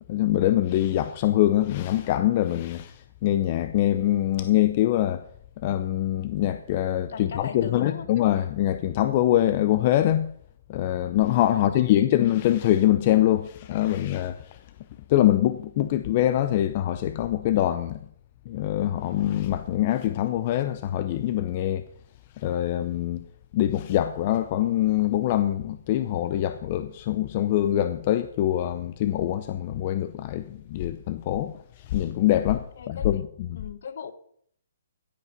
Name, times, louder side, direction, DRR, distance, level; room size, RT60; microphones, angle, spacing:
voice 1, 0.1-5.2 5.6-10.3 10.7-14.4 15.1-18.0 18.5-21.8 22.4-23.2 23.5-31.5 31.9-33.2, left 13 dB, 35° left, 0.6 m, -24 dB
voice 2, 7.1-8.1 11.5-12.1 32.8-33.2 33.5-34.1, left 6 dB, 55° left, 1.2 m, -38 dB
15.0 x 8.2 x 5.4 m
hypercardioid pair, 160°, 0 cm